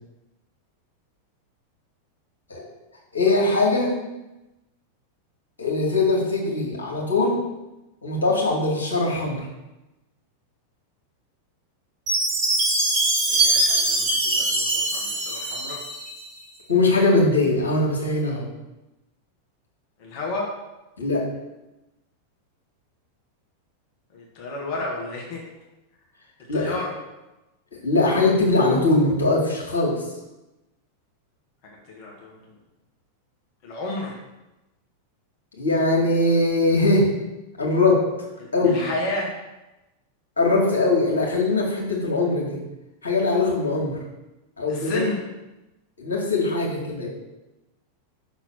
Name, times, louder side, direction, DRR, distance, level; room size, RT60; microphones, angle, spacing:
voice 1, 3.1-4.0 5.6-7.4 8.0-9.5 16.7-18.5 21.0-21.2 26.5-26.8 27.7-30.0 35.6-37.1 37.6-38.0 38.5-38.8 40.4-42.6 43.0-44.0 44.6-45.0 46.0-47.1, left 2 dB, 70° left, -2 dB, 2.2 m, -21 dB
Chime, 12.1-16.2, right 2 dB, 30° right, 2.3 m, -22 dB
voice 2, 13.3-15.8 20.0-20.5 24.1-25.4 26.5-26.9 31.9-32.4 33.6-34.2 38.4-39.3 44.7-45.2, left 2 dB, 45° left, -2 dB, 1.6 m, -31 dB
6.0 x 3.9 x 6.2 m, 1.0 s
figure-of-eight pair, 90°, 0 cm